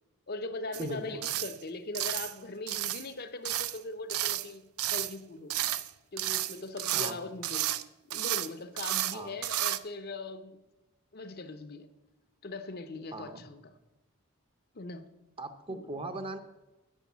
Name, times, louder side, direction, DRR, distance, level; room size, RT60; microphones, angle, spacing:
voice 1, 0.3-5.6 6.1-7.8 8.1-10.6 11.1-11.9 12.4-13.6 14.7-15.1 15.7-16.0, left 2 dB, 45° left, 0.7 m, -40 dB
sound 1, 0.7-0.9 1.2-1.6 1.9-2.3 2.7-3.1 3.4-3.8 4.1-4.5 4.8-5.1 5.5-5.9 6.2-7.1 7.4-7.8 8.1-8.5 8.8-9.2 9.4-9.8, right 14 dB, 75° right, 0.5 m, -32 dB
voice 2, 0.8-1.2 6.9-7.3 9.1-9.4 13.1-13.4 15.4-16.4, right 2 dB, 25° right, 0.7 m, -39 dB
10.0 x 6.4 x 8.4 m
head